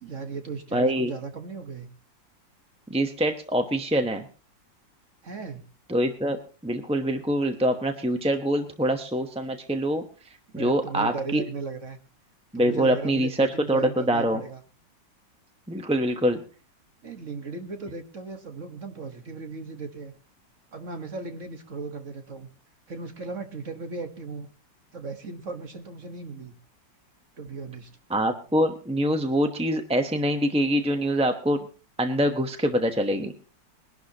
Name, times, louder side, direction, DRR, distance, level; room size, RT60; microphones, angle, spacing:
voice 1, 0.0-1.9 5.2-5.6 10.5-12.0 12.5-14.6 17.0-20.1 20.7-22.5 22.9-24.5 24.9-26.6 27.4-27.9, right 4 dB, 45° right, 6 dB, 1.7 m, -36 dB
voice 2, 0.7-1.1 2.9-4.3 5.9-10.0 10.5-11.4 12.5-14.4 15.7-16.4 28.1-31.7 32.0-33.3, equal, 5° right, 5 dB, 0.6 m, -24 dB
22.0 x 11.5 x 2.9 m, 0.34 s
omnidirectional pair, 2.0 m